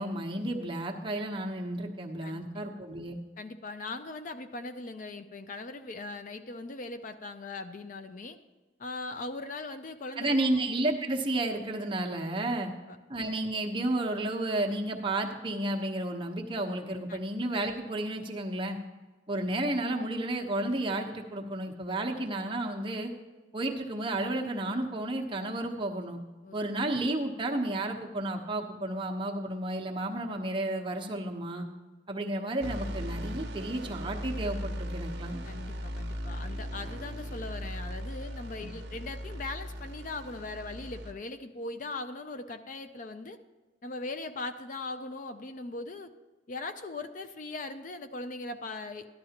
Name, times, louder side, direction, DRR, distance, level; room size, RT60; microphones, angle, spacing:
voice 1, 0.0-3.2 10.2-12.7 13.1-18.8 19.3-23.1 23.5-26.2 26.5-31.7 32.1-35.4, right 1 dB, 25° right, 1 dB, 1.0 m, -32 dB
voice 2, 2.2-2.6 3.4-8.4 8.8-10.6 12.9-13.0 17.1-17.2 26.4-26.6 35.4-43.4 43.8-46.1 46.5-49.1, left 3 dB, 40° left, 10 dB, 0.4 m, -40 dB
sound 1, 32.6-41.1, equal, 60° right, 0.9 m, -38 dB
13.5 x 11.5 x 2.9 m, 1.3 s
head